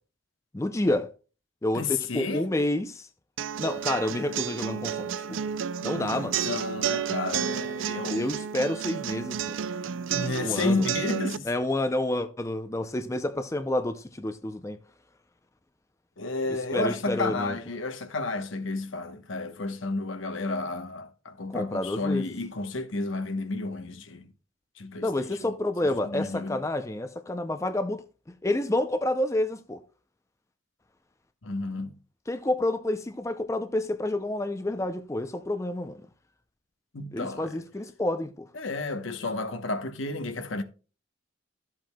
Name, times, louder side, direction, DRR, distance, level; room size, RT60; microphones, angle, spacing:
voice 1, 0.5-1.1 1.6-3.1 3.6-5.4 5.8-6.4 8.1-9.6 10.4-10.9 11.5-14.8 16.7-17.6 21.5-22.3 25.0-28.0 28.4-29.8 32.3-36.0 37.1-38.4, left 1 dB, 15° left, 0.4 m, -29 dB
voice 2, 1.7-2.5 6.0-6.1 6.4-8.3 10.1-11.5 16.2-24.3 24.8-25.5 25.8-26.6 31.4-31.9 36.9-37.6 38.5-40.6, left 3 dB, 75° left, 1.0 m, -31 dB
sound 1, 3.4-11.4, right 8 dB, 70° right, 0.4 m, -31 dB
13.5 x 7.6 x 2.2 m
head